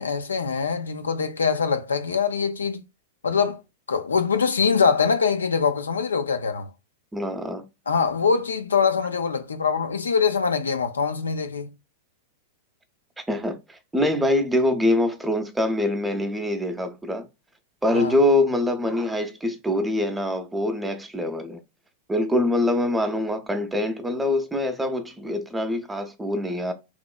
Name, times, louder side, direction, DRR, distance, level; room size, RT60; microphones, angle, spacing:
voice 1, 0.0-2.8 3.2-3.6 3.9-6.7 7.9-11.7 17.9-18.1, left 5 dB, 80° left, 0.3 m, -23 dB
voice 2, 7.1-7.6 13.3-17.3 17.8-21.6 22.1-26.7, left 1 dB, 10° right, 0.5 m, -24 dB
2.9 x 2.1 x 2.2 m
figure-of-eight pair, 100°, 0 cm